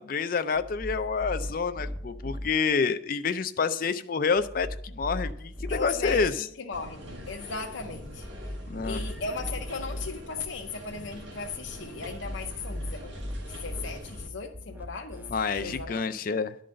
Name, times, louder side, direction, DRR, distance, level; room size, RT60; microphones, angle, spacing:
voice 1, 0.0-6.5 8.7-9.0 15.3-16.6, left 5 dB, 45° left, 0.4 m, -28 dB
sound 1, 0.5-2.5 4.4-6.3 8.2-10.1 12.0-15.8, equal, 10° right, 0.6 m, -38 dB
voice 2, 5.7-6.3 6.6-8.2 8.8-13.1 13.4-15.3 15.6-16.2, left 4 dB, 75° left, 0.7 m, -37 dB
sound 2, 6.7-14.3, equal, 75° right, 1.7 m, -43 dB
11.0 x 3.9 x 7.5 m
head